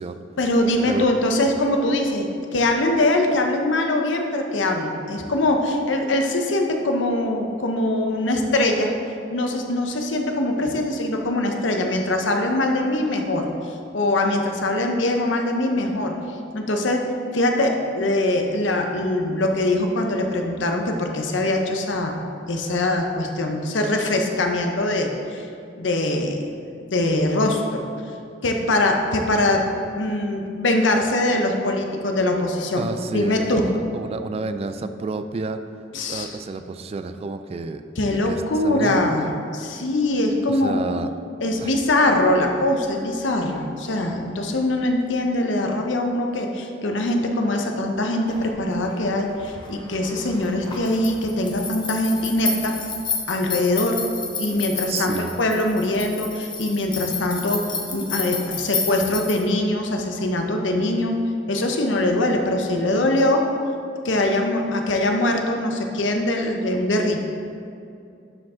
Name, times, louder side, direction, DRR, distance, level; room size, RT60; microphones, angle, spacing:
voice 1, 0.4-8.9 9.3-17.0 17.3-22.2 22.5-25.5 25.8-26.4 26.8-27.9 28.4-29.6 30.0-32.8 33.1-33.7 35.9-36.3 38.0-40.8 41.4-52.7 53.3-54.0 54.4-57.6 57.9-61.2 61.5-63.4 64.0-67.2, left 1 dB, 85° left, 3 dB, 0.9 m, -22 dB
voice 2, 32.8-35.6 36.1-39.3 40.5-41.1 41.6-41.7 54.8-55.4, right 3 dB, 35° right, 9 dB, 0.3 m, -30 dB
sound 1, 48.3-59.4, left 4 dB, 25° left, 1.0 m, -31 dB
11.5 x 5.0 x 3.7 m, 2.5 s
head